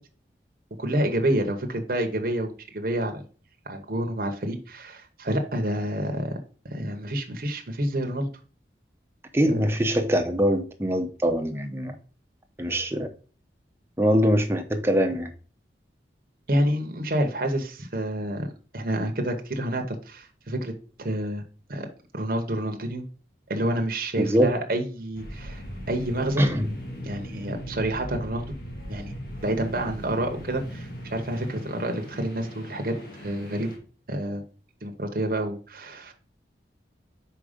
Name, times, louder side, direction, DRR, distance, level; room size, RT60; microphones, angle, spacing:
voice 1, 0.8-3.2 3.7-6.4 6.7-8.3 9.4-9.7 16.5-20.7 21.0-21.4 21.7-21.9 22.1-23.0 23.5-25.6 25.9-26.4 27.0-28.4 28.9-29.1 29.4-33.7 34.1-34.4 34.8-36.1, right 1 dB, 55° right, 0.9 m, -28 dB
voice 2, 9.3-11.9 12.6-13.1 14.0-15.3 24.2-24.5 26.4-26.7, equal, 15° right, 0.6 m, -23 dB
sound 1, 25.1-33.8, equal, 55° left, 1.6 m, -39 dB
5.0 x 4.6 x 5.0 m
head